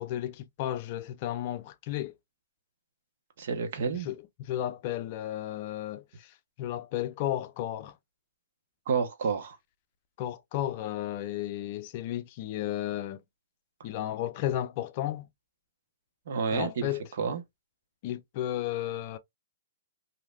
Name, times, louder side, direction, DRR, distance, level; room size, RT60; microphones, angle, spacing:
voice 1, 0.0-2.1 4.0-8.0 10.2-13.2 13.8-15.3 16.5-17.0 18.0-19.2, left 13 dB, 40° left, 0.5 m, -33 dB
voice 2, 3.4-4.1 8.9-9.6 16.3-16.9 17.2-17.4, right 5 dB, 60° right, 1.0 m, -29 dB
3.1 x 2.7 x 2.3 m
hypercardioid pair, 150°, 0 cm